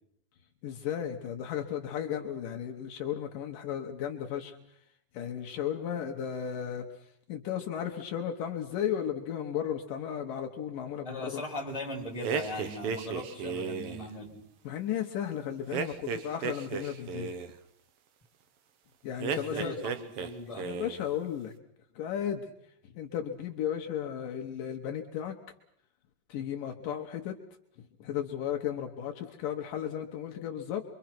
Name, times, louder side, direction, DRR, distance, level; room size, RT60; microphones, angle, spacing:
voice 1, 0.6-4.6 5.1-6.8 7.3-11.4 14.6-17.3 19.0-19.8 20.6-21.5 22.0-22.5 22.9-25.3 26.3-27.4 28.0-30.8, left 9 dB, 70° left, 3 dB, 2.7 m, -34 dB
voice 2, 11.0-14.4 19.3-20.7, left 1 dB, 10° left, 0 dB, 3.8 m, -39 dB
sound 1, 12.2-14.1 15.7-17.5 19.2-20.3 20.6-21.1, right 6 dB, 70° right, 1.4 m, -34 dB
26.0 x 24.0 x 6.0 m, 0.71 s
omnidirectional pair, 4.1 m